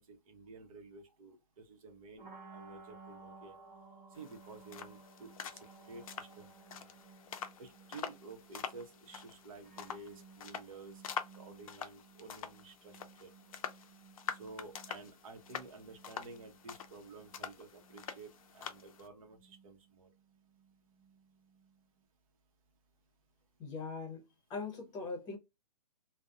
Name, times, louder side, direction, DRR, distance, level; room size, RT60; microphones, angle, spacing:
voice 1, 0.0-3.6 4.1-6.5 6.7-6.9 7.6-11.0 11.4-13.3 14.3-20.1, right 3 dB, 55° right, 0.8 m, -52 dB
sound 1, 2.2-22.0, right 4 dB, 25° right, 1.1 m, -58 dB
sound 2, 4.1-19.1, left 8 dB, 55° left, 0.5 m, -46 dB
voice 2, 23.6-24.2 24.5-25.4, left 4 dB, 20° left, 0.8 m, -40 dB
2.5 x 2.1 x 2.4 m
hypercardioid pair, 135°, 21 cm